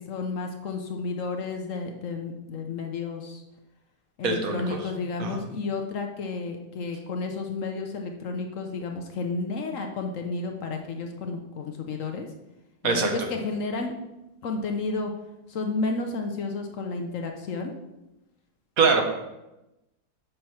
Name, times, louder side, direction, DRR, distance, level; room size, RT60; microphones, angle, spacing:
voice 1, 0.0-3.4 4.2-12.3 12.8-13.9 14.4-15.1 15.5-17.7, left 3 dB, 60° left, 3 dB, 1.0 m, -31 dB
voice 2, 4.2-4.8 5.2-5.4 12.8-13.1 18.8-19.1, right 4 dB, 65° right, 3 dB, 1.3 m, -23 dB
6.6 x 4.5 x 5.6 m, 0.95 s
omnidirectional pair, 1.7 m